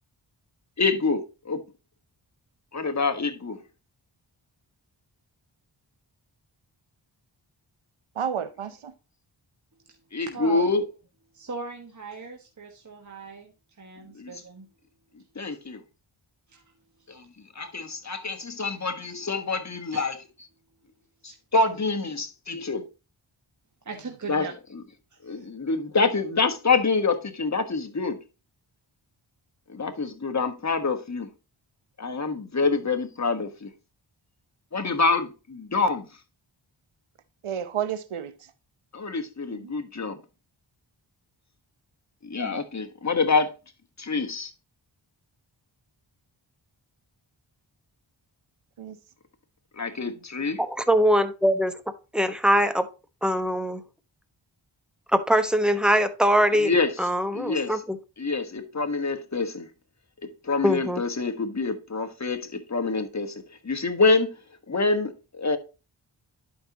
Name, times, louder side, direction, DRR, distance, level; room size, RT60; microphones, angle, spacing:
voice 1, 0.8-1.6 2.7-3.6 10.1-10.8 14.1-14.3 15.3-15.8 17.1-17.2 17.5-20.1 21.2-22.8 24.3-24.5 25.2-28.2 29.7-31.3 32.0-33.7 34.7-36.1 38.9-40.2 42.2-43.5 44.0-44.5 49.8-50.6 56.6-56.9 57.3-57.7 58.2-59.7 60.4-64.3 64.7-65.6, left 4 dB, 35° left, 1.4 m, -26 dB
voice 2, 8.1-8.9 37.4-38.5 39.5-39.7 42.4-42.6 48.8-49.0 50.1-50.2, right 8 dB, 85° right, 0.9 m, -32 dB
voice 3, 10.2-10.7 11.3-13.5 13.8-14.7 16.5-16.6 19.9-20.0 21.2-21.4 23.8-24.5 25.2-25.5, right 4 dB, 35° right, 1.4 m, -38 dB
voice 4, 50.6-51.7 52.1-52.9 53.2-53.8 55.1-56.7 57.0-58.0 60.6-61.0, equal, ahead, 1.1 m, -22 dB
11.0 x 5.3 x 2.9 m
cardioid pair, 45°, 49 cm